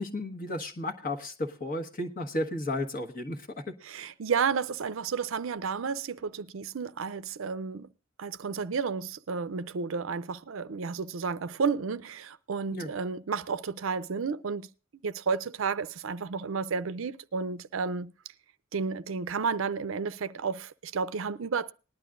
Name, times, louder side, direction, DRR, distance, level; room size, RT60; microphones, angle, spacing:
voice 1, 0.0-3.6 4.0-4.1 12.7-12.9, left 1 dB, 40° left, 1.3 m, -33 dB
voice 2, 3.8-7.9 8.2-14.7 15.0-18.1 18.7-21.7, right 5 dB, 70° right, 0.5 m, -32 dB
19.5 x 11.0 x 2.5 m
head